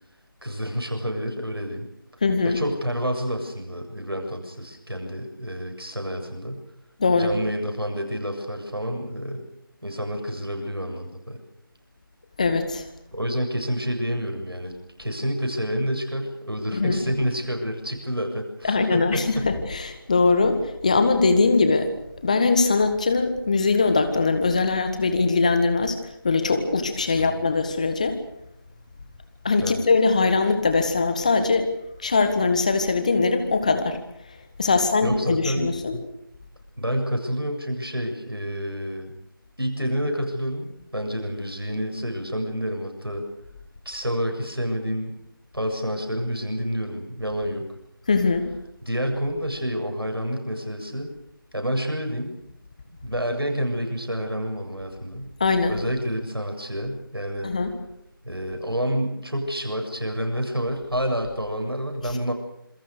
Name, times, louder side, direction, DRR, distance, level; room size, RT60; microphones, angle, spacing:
voice 1, 0.4-1.9 2.4-6.6 7.1-9.4 9.8-11.4 13.1-14.7 15.0-19.5 27.1-27.4 29.6-29.9 35.0-36.0 36.8-39.1 39.6-43.2 43.8-45.1 45.5-47.6 48.8-51.1 51.5-52.4 53.0-55.3 55.7-57.5 58.2-62.3, equal, 85° right, 3 dB, 7.7 m, -28 dB
voice 2, 2.2-2.6 7.0-7.3 12.4-12.8 16.7-17.0 18.6-21.9 22.2-26.0 26.2-28.2 29.4-31.7 32.0-34.0 34.6-36.0 48.1-48.5 55.4-55.7 57.4-57.7, left 4 dB, 20° left, 8 dB, 1.7 m, -21 dB
27.5 x 22.0 x 6.7 m, 0.75 s
figure-of-eight pair, 165°, 12 cm